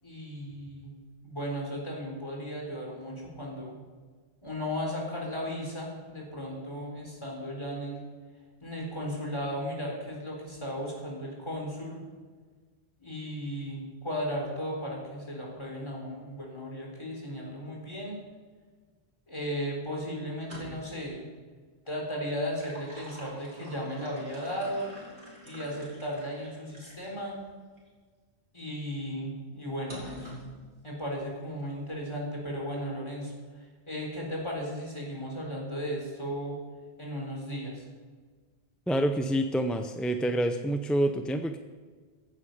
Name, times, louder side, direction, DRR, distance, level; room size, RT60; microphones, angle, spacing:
voice 1, 0.0-0.9 1.2-3.7 4.4-8.0 8.6-12.0 13.0-18.2 19.3-21.2 21.9-24.9 25.4-27.4 28.5-30.3 30.8-33.3 33.9-36.6 37.0-37.8, equal, 25° left, -2 dB, 4.0 m, -35 dB
sound 1, 20.3-21.0 22.3-27.2 27.8-27.9 29.9-30.5, equal, 50° right, 4.3 m, -47 dB
voice 2, 38.9-41.6, right 1 dB, ahead, 6 dB, 0.4 m, -27 dB
15.5 x 10.0 x 5.4 m, 1.5 s
omnidirectional pair, 1.1 m